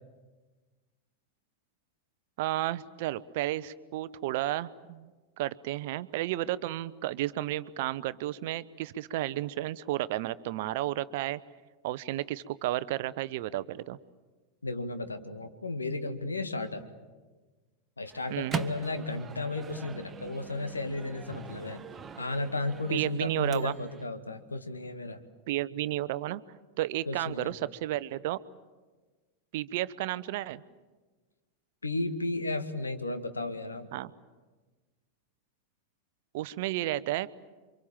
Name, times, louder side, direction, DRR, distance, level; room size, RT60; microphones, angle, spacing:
voice 1, 2.4-5.1 5.4-11.4 11.8-14.0 18.3-18.6 22.9-23.8 25.5-26.4 26.8-28.4 29.5-30.6 33.9-34.1 36.3-37.3, right 15 dB, 50° right, 17 dB, 0.8 m, -32 dB
voice 2, 14.6-16.9 18.0-21.9 22.2-25.2 27.1-27.5 31.8-33.9, left 2 dB, 80° left, 9 dB, 1.9 m, -34 dB
Microwave oven, 18.1-24.1, right 7 dB, 20° right, 1.1 m, -42 dB
28.5 x 25.0 x 7.3 m, 1.3 s
figure-of-eight pair, 90°, 0 cm